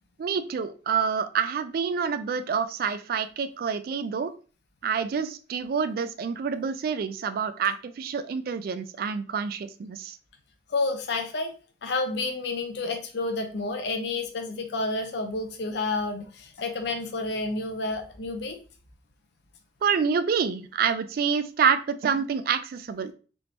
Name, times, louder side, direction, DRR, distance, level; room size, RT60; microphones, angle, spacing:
voice 1, 0.2-4.3 4.8-10.2 19.8-23.1, right 6 dB, 55° right, 11 dB, 0.3 m, -27 dB
voice 2, 10.7-11.5 11.8-18.6, left 3 dB, 65° left, 5 dB, 0.5 m, -30 dB
3.5 x 2.5 x 2.8 m, 0.36 s
head